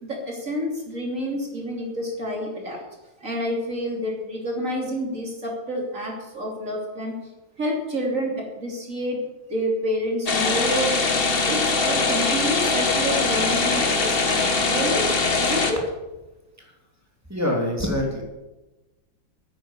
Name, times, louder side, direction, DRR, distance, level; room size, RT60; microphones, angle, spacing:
voice 1, 0.0-3.0 3.2-7.1 7.6-9.2 9.5-11.0 11.4-15.1 15.4-15.8, equal, 40° right, -1 dB, 3.5 m, -28 dB
sound 1, 10.3-15.7, left 3 dB, 35° left, 1.4 m, -22 dB
voice 2, 17.3-18.2, left 1 dB, 10° right, 0 dB, 2.9 m, -24 dB
9.7 x 9.6 x 8.3 m, 1.1 s
omnidirectional pair, 2.0 m